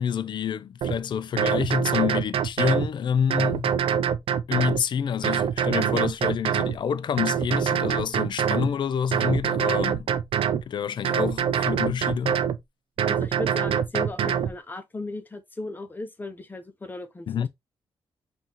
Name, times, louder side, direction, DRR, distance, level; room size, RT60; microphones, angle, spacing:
voice 1, 0.0-3.8 4.5-10.1 10.7-12.4 17.3-17.5, left 8 dB, 55° left, 0.4 m, -28 dB
sound 1, 0.8-1.0 1.4-2.9 3.3-4.8 5.2-6.8 7.2-8.7 9.1-10.6 11.0-12.6 13.0-14.5, right 8 dB, 70° right, 0.5 m, -24 dB
voice 2, 13.1-17.3, left 2 dB, 20° left, 0.8 m, -36 dB
5.6 x 2.7 x 2.9 m
cardioid pair, 125°, 10 cm